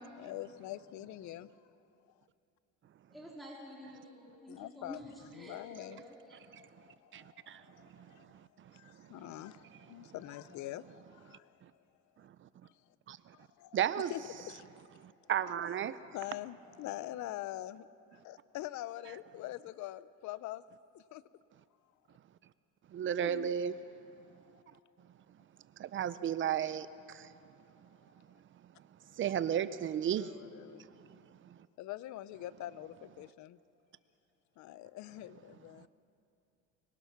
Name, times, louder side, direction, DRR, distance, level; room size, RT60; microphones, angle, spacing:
voice 1, 0.2-1.5 4.5-11.6 12.7-12.8 13.3-14.7 15.9-20.6 20.9-21.2 23.2-23.5 24.2-24.3 30.1-30.9 31.8-33.6 34.6-35.9, left 14 dB, 60° left, 0.7 m, -45 dB
voice 2, 3.1-6.2, equal, ahead, 3.4 m, -49 dB
voice 3, 7.1-7.6 13.1-13.2 13.7-14.1 15.3-16.0 22.9-23.7 25.8-27.3 29.2-30.3, right 9 dB, 35° right, 0.6 m, -33 dB
25.0 x 21.5 x 5.9 m
cardioid pair, 130°, 34 cm